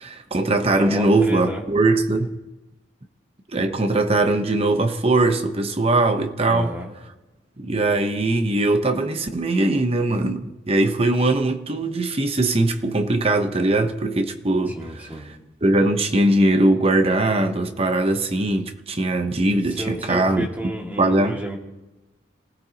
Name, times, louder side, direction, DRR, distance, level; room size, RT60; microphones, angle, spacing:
voice 1, 0.0-2.3 3.5-6.7 7.6-15.3 15.6-20.5 21.0-21.4, right 2 dB, 30° right, 1.0 m, -21 dB
voice 2, 0.8-1.6 6.5-6.9 14.7-15.3 19.8-21.6, right 1 dB, 10° right, 2.2 m, -31 dB
27.5 x 17.0 x 2.9 m
head